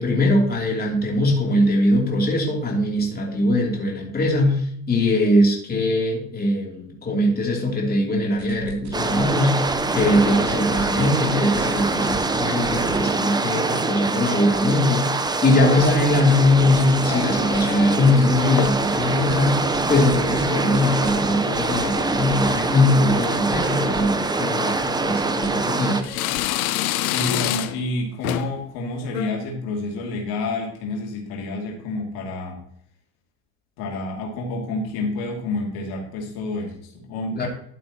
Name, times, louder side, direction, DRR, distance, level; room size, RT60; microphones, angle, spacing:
voice 1, 0.0-19.6 19.9-26.2 37.4-37.5, left 1 dB, 20° left, -1 dB, 3.0 m, -21 dB
sound 1, 8.4-13.0 13.5-13.7 14.3-14.7 15.4-24.2 24.5-26.6, right 2 dB, 40° right, 2.3 m, -39 dB
sound 2, 8.9-26.0, right 3 dB, 10° right, 0.7 m, -24 dB
sound 3, 14.7-15.4 16.1-16.6 17.0-18.3 18.6-18.9 19.2-21.2 21.5-22.0 22.5-22.9 23.2-23.3 24.2-24.4 25.0-25.7 26.0-27.9 28.2-28.6 29.0-29.3, left 13 dB, 80° left, 0.8 m, -29 dB
voice 2, 27.1-32.6 33.8-37.5, left 2 dB, 60° left, 0 dB, 2.6 m, -29 dB
12.0 x 8.6 x 2.9 m, 0.66 s
hypercardioid pair, 85°, 42 cm